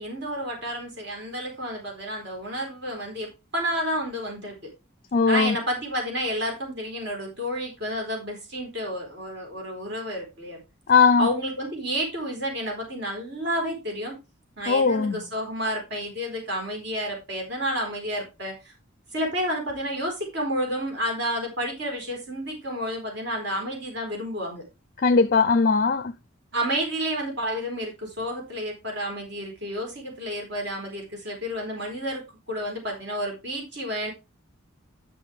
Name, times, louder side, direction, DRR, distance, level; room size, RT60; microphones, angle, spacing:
voice 1, 0.0-4.7 5.3-10.6 11.2-14.2 14.6-18.7 19.1-24.6 26.5-34.1, equal, 55° right, 4.2 m, -30 dB
voice 2, 5.1-5.6 10.9-11.3 14.7-15.2 25.0-26.1, left 5 dB, 45° left, 0.4 m, -19 dB
12.5 x 6.0 x 3.4 m
head